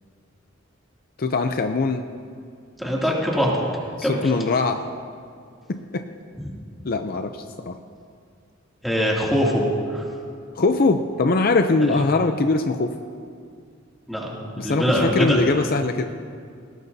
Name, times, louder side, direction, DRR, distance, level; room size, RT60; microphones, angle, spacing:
voice 1, 1.2-2.0 4.0-4.8 5.7-6.1 6.8-7.3 7.6-7.8 10.6-12.9 14.6-16.1, left 3 dB, 50° left, 7 dB, 0.5 m, -21 dB
voice 2, 2.8-3.5 4.0-4.3 8.8-9.6 9.9-10.0 11.9-12.0 14.1-15.7, equal, ahead, -5 dB, 2.6 m, -23 dB
20.0 x 18.5 x 2.7 m, 2.3 s
head